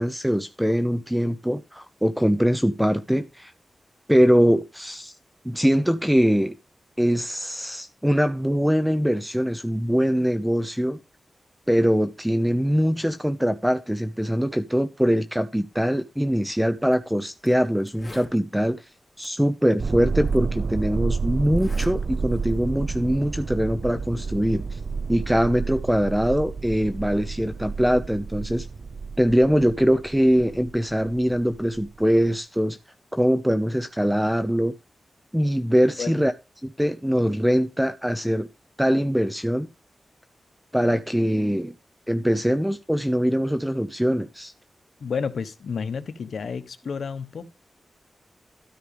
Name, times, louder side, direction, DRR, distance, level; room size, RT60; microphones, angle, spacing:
voice 1, 0.0-3.5 4.1-5.1 5.4-6.5 7.0-11.0 11.7-18.9 19.2-24.8 25.1-28.7 29.2-32.8 33.1-34.7 35.3-36.3 36.6-38.5 38.8-39.7 40.7-41.7 42.1-44.5, equal, 5° right, 0.9 m, -22 dB
Zipper (clothing), 16.8-17.0 17.5-17.6 17.8-18.4 19.2-19.3 20.3-20.4 21.4-21.9 22.3-22.6, left 1 dB, 20° left, 4.0 m, -42 dB
sound 1, 19.8-32.3, right 4 dB, 60° right, 0.6 m, -30 dB
voice 2, 45.0-47.5, left 6 dB, 85° left, 1.0 m, -31 dB
13.0 x 5.0 x 5.2 m
wide cardioid pair, 80°, 0 cm